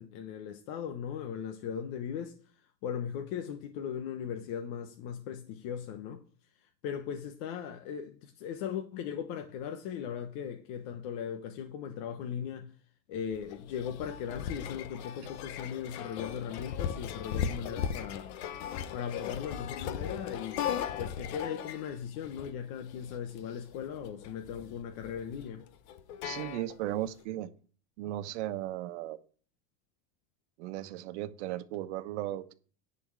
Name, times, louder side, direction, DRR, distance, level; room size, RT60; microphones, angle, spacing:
voice 1, 0.0-2.4 2.8-6.2 6.6-12.7 13.1-18.3 18.9-20.6 21.0-25.6, left 8 dB, 55° left, 1.1 m, -38 dB
sound 1, 13.2-27.1, left 8 dB, 80° left, 1.0 m, -38 dB
voice 2, 26.2-27.5 28.0-29.2 30.6-32.5, right 14 dB, 90° right, 1.1 m, -36 dB
10.5 x 4.5 x 7.1 m
cardioid pair, 170°, 33 cm